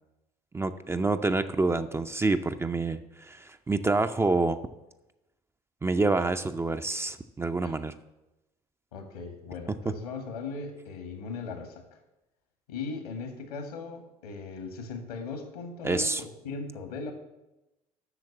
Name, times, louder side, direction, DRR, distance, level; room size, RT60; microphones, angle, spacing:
voice 1, 0.5-4.6 5.8-7.9 15.8-16.2, right 3 dB, 15° right, 8 dB, 0.5 m, -27 dB
voice 2, 8.9-11.8 12.7-17.1, left 4 dB, 75° left, 5 dB, 1.8 m, -38 dB
8.0 x 6.4 x 7.3 m, 0.98 s
figure-of-eight pair, 60°, 19 cm